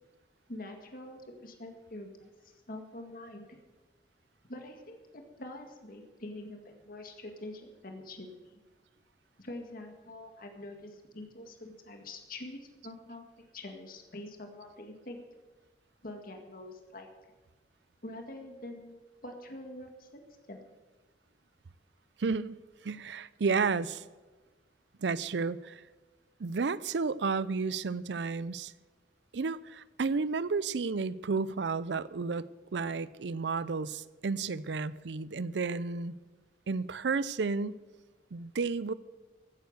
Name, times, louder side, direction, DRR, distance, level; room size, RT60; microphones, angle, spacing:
voice 1, 0.5-3.6 4.5-8.6 9.4-13.2 13.5-15.2 16.0-17.1 18.0-20.2 20.5-20.6, left 1 dB, 50° left, 4 dB, 1.9 m, -45 dB
voice 2, 22.2-24.0 25.0-25.8 26.4-28.7 29.3-36.1 36.7-37.8 38.3-38.9, right 4 dB, 75° right, 18 dB, 0.5 m, -32 dB
15.5 x 9.3 x 6.6 m, 1.3 s
head